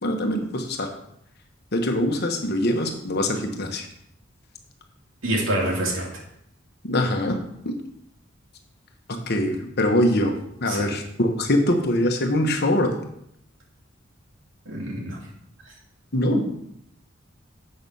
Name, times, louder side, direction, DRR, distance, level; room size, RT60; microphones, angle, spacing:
voice 1, 0.0-0.9 1.7-3.9 6.8-7.4 7.6-7.8 9.1-10.3 10.6-12.9 16.1-16.4, left 1 dB, 55° left, 4 dB, 1.2 m, -23 dB
voice 2, 5.2-6.1 10.7-10.9 14.7-15.2 16.3-16.5, right 1 dB, 80° right, -1 dB, 2.5 m, -26 dB
7.8 x 6.2 x 5.4 m, 0.72 s
head